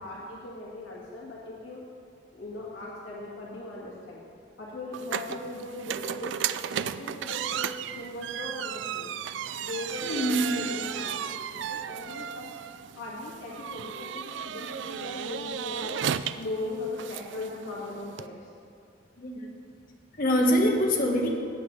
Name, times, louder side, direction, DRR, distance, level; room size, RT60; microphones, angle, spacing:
voice 1, 0.0-1.8 2.3-4.2 4.6-6.4 6.6-9.1 9.6-12.5 12.9-16.0 16.4-18.5, left 2 dB, 80° left, -5 dB, 2.0 m, -39 dB
sound 1, 4.9-18.3, right 9 dB, 70° right, 0.3 m, -35 dB
voice 2, 10.0-10.6 19.2-19.5 20.2-21.3, equal, 45° left, 0 dB, 1.4 m, -24 dB
17.5 x 8.3 x 3.3 m, 2.5 s
head